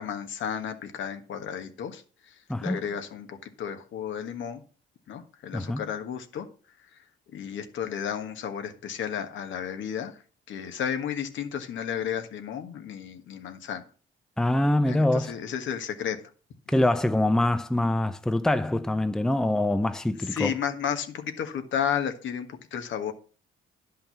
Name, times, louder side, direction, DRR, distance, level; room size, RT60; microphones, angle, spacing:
voice 1, 0.0-2.0 2.6-4.6 5.1-6.5 7.3-10.2 10.5-13.8 14.9-16.2 20.3-23.1, left 8 dB, 75° left, 1.5 m, -32 dB
voice 2, 2.5-2.8 5.5-5.8 14.4-15.3 16.7-20.5, left 1 dB, 5° left, 0.6 m, -24 dB
11.0 x 5.6 x 5.8 m
cardioid pair, 90°, 20 cm